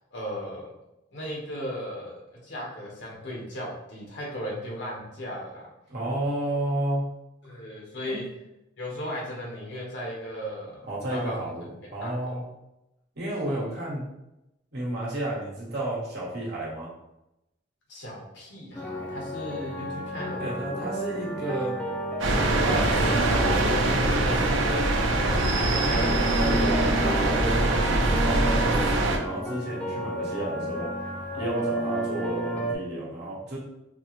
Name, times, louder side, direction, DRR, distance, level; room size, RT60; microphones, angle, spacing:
voice 1, 0.1-0.7 1.1-5.6 7.4-8.2 8.8-11.5 12.0-12.4 13.4-13.7 17.9-20.6 25.7-26.1, equal, 65° left, -3 dB, 1.1 m, -36 dB
voice 2, 5.9-7.1 8.0-8.2 10.8-12.4 13.1-14.1 14.7-16.9 20.4-21.8 22.6-24.5 25.8-30.9 31.3-33.6, right 1 dB, 60° right, -5 dB, 1.1 m, -32 dB
sound 1, 18.7-32.7, equal, 10° left, 0.3 m, -32 dB
sound 2, 22.2-29.2, right 2 dB, 85° right, 0.5 m, -23 dB
4.4 x 2.0 x 2.9 m, 0.91 s
head